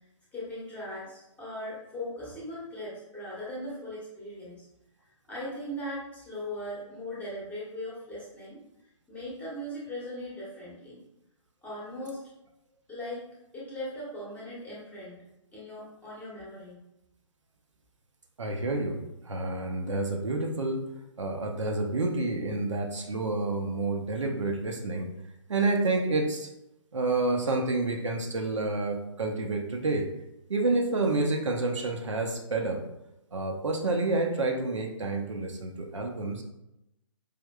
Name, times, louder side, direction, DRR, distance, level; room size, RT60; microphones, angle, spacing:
voice 1, 0.3-4.7 5.3-8.6 9.1-11.0 11.6-12.2 12.9-13.2 13.5-15.2 15.5-16.8, left 1 dB, 10° left, -6 dB, 0.9 m, -39 dB
voice 2, 18.4-19.0 19.2-20.8 21.2-25.1 25.5-26.5 26.9-30.1 30.5-32.8 33.3-36.4, right 2 dB, 65° right, 2 dB, 0.6 m, -29 dB
4.9 x 2.5 x 2.2 m, 0.88 s
figure-of-eight pair, 130°, 16 cm